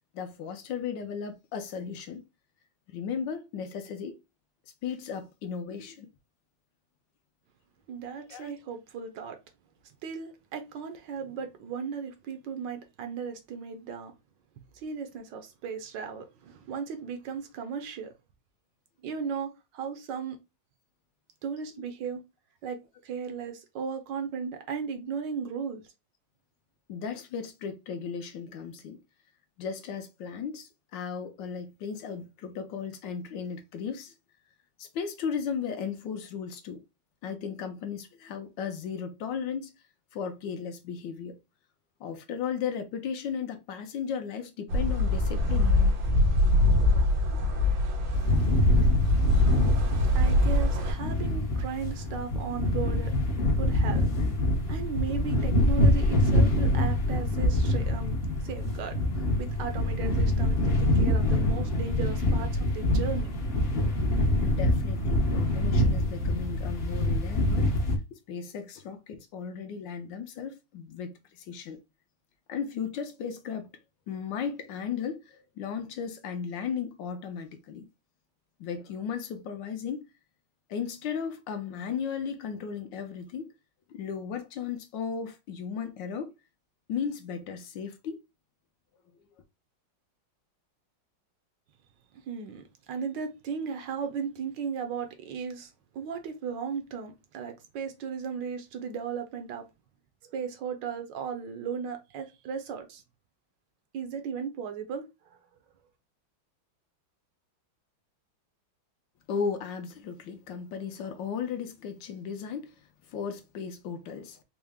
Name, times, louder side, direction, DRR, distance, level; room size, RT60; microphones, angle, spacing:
voice 1, 0.1-2.2 2.9-4.2 4.8-6.1 8.3-8.5 26.9-29.0 29.6-34.1 34.8-36.8 37.2-39.7 40.1-41.4 42.0-45.9 50.5-50.6 64.4-67.7 68.1-71.8 72.5-73.7 74.1-77.9 78.6-80.1 80.7-83.5 83.9-86.3 86.9-88.2 109.3-112.7 113.1-114.4, left 7 dB, 75° left, 1.2 m, -35 dB
voice 2, 7.9-9.4 10.0-14.1 14.7-18.1 19.0-20.4 21.4-22.2 22.6-25.8 50.1-53.1 53.6-54.1 54.7-59.0 59.4-63.4 92.3-99.7 100.2-103.0 103.9-105.0 105.3-105.4, right 6 dB, 70° right, 1.2 m, -36 dB
sound 1, 44.7-50.9, left 1 dB, 90° right, 1.9 m, -23 dB
sound 2, 48.1-68.0, left 1 dB, 50° left, 0.7 m, -25 dB
4.5 x 2.1 x 3.4 m
omnidirectional pair, 2.2 m